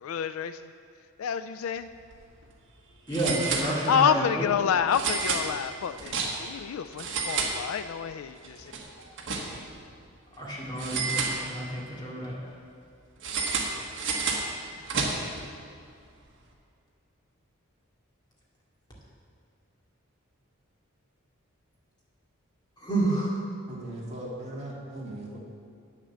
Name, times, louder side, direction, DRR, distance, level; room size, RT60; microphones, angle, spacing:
voice 1, 0.0-0.6 1.2-1.9 3.9-6.1 6.4-8.6, left 7 dB, 70° left, 11 dB, 0.3 m, -28 dB
sound 1, 1.9-2.1 2.4-2.5 3.1-4.2 4.9-6.6 6.9-8.1 8.4-9.8 10.8-11.9 13.2-15.5, right 4 dB, 60° right, 1.4 m, -31 dB
voice 2, 3.1-4.5 10.4-12.4 22.8-23.4, right 1 dB, 20° left, -6 dB, 2.5 m, -29 dB
voice 3, 23.7-25.4, right 1 dB, 30° right, -4 dB, 1.9 m, -38 dB
8.9 x 7.3 x 6.9 m, 2.3 s
head